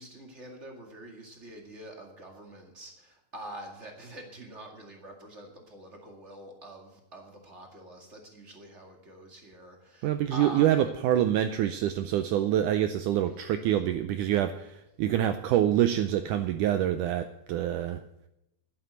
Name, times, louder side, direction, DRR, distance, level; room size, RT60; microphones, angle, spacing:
voice 1, 0.0-10.8, right 1 dB, 30° right, 2 dB, 1.5 m, -45 dB
voice 2, 10.0-18.0, right 11 dB, 85° right, 10 dB, 1.8 m, -26 dB
11.0 x 9.6 x 8.0 m, 0.84 s
omnidirectional pair, 4.3 m